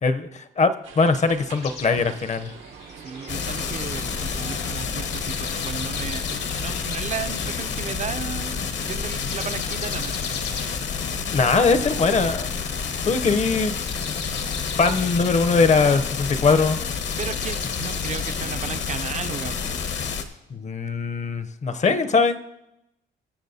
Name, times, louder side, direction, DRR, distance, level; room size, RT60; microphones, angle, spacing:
voice 1, 0.0-2.5 11.3-12.5 13.0-13.7 14.8-16.8 20.5-22.4, left 4 dB, 35° left, 11 dB, 0.6 m, -21 dB
sound 1, 0.8-18.8, right 6 dB, 85° right, 1.1 m, -48 dB
sound 2, 1.6-8.1 8.4-18.5, left 6 dB, 80° left, 1.9 m, -41 dB
voice 2, 3.0-10.2 17.2-19.8 21.8-22.0, right 7 dB, 35° right, 14 dB, 0.5 m, -34 dB
sound 3, 3.3-20.2, left 6 dB, 65° left, 1.0 m, -29 dB
20.0 x 7.2 x 2.7 m, 0.86 s
cardioid pair, 90°, 20 cm